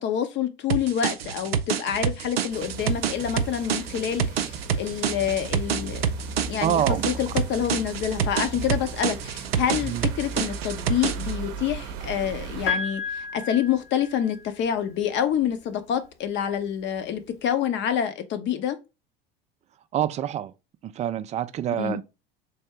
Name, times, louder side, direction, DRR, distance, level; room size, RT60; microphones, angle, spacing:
voice 1, 0.0-6.0 6.5-18.8 21.8-22.0, left 9 dB, 40° left, 0.7 m, -27 dB
sound 1, 0.7-11.4, right 8 dB, 85° right, 0.5 m, -27 dB
sound 2, 2.5-12.7, right 4 dB, 50° right, 0.7 m, -37 dB
voice 2, 6.6-7.0 9.8-10.1 19.9-20.5 20.8-22.0, right 11 dB, 25° right, 0.3 m, -26 dB
Piano, 12.7-14.7 15.9-16.0, left 5 dB, 70° left, 1.3 m, -31 dB
3.4 x 2.7 x 4.4 m
figure-of-eight pair, 80°, 29 cm